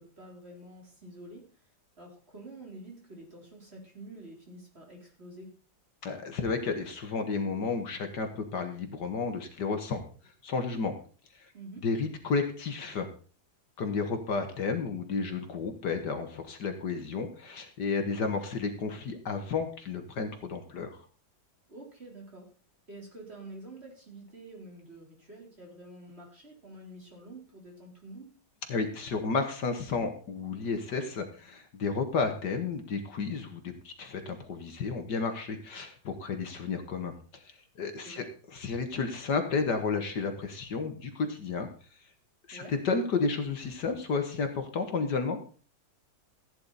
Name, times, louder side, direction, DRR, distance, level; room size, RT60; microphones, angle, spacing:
voice 1, 0.0-1.5 2.0-5.6 11.5-11.9 18.2-18.4 21.7-22.5 22.9-28.3 38.0-38.3 42.5-42.7, right 2 dB, 30° right, -1 dB, 4.0 m, -48 dB
voice 2, 6.0-10.0 10.4-10.9 11.4-11.5 11.8-13.1 13.8-21.0 28.7-37.4 37.8-41.7 42.5-45.4, left 4 dB, 60° left, 6 dB, 1.9 m, -32 dB
15.0 x 9.9 x 4.1 m, 0.39 s
omnidirectional pair, 2.1 m